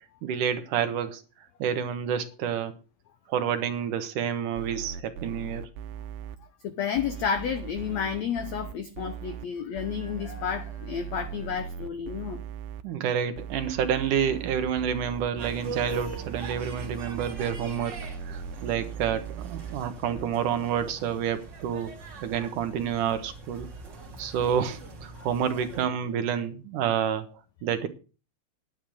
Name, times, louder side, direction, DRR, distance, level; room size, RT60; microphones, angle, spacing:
voice 1, 0.2-1.2 1.6-2.7 3.3-5.7 12.8-21.9 22.2-23.7 24.2-27.3 27.6-27.9, right 8 dB, 70° right, 2.3 m, -29 dB
sound 1, 4.6-6.4 7.0-9.5 9.8-12.8 13.4-19.8 20.2-20.3, right 7 dB, 90° right, 2.7 m, -39 dB
voice 2, 6.6-12.4 25.1-25.3, left 7 dB, 90° left, 1.5 m, -31 dB
sound 2, 15.4-25.8, right 3 dB, 35° right, 2.6 m, -42 dB
10.5 x 8.7 x 6.2 m
omnidirectional pair, 4.3 m